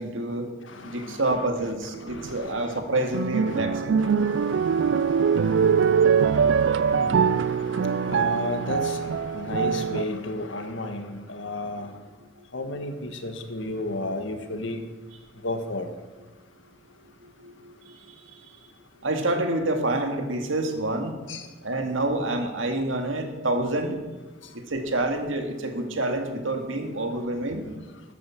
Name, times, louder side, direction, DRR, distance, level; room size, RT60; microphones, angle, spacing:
voice 1, 0.0-0.5 0.8-4.0 12.4-12.5 15.1-15.3 16.2-16.3 17.2-18.6 19.0-21.2 21.6-24.0 24.5-27.7, right 2 dB, 85° right, 4 dB, 2.0 m, -28 dB
voice 2, 0.7-1.2 2.1-2.9 3.5-3.7 4.0-11.9 12.5-14.8 15.4-15.9 21.3-21.5, left 2 dB, 80° left, 6 dB, 1.7 m, -34 dB
sound 1, 2.0-2.4 2.9-10.0, right 6 dB, 70° right, 0.3 m, -23 dB
13.5 x 9.5 x 7.1 m, 1.2 s
head